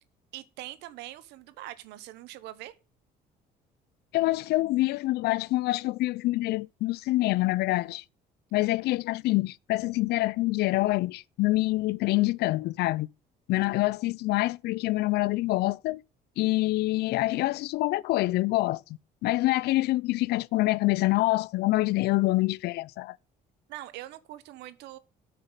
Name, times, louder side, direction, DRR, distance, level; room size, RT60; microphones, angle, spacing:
voice 1, 0.3-2.7 23.7-25.0, right 15 dB, 85° right, 0.9 m, -43 dB
voice 2, 4.1-8.0 8.5-13.1 13.5-16.0 16.4-18.8 19.2-23.2, left 19 dB, 75° left, 0.4 m, -26 dB
8.4 x 5.6 x 7.2 m
cardioid pair, 110°, 17 cm